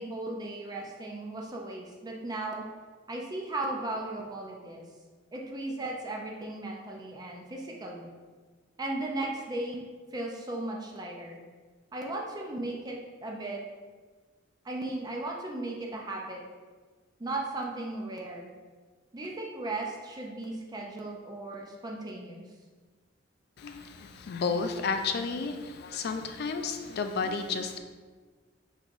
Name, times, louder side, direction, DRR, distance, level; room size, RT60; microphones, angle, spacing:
voice 1, 0.0-2.6 3.1-4.8 5.3-8.1 8.8-11.4 11.9-13.6 14.6-16.4 17.2-18.5 19.1-22.4, right 2 dB, 20° right, -1 dB, 0.4 m, -36 dB
voice 2, 23.6-27.8, left 4 dB, 55° left, 7 dB, 0.3 m, -32 dB
5.3 x 3.0 x 2.5 m, 1.4 s
head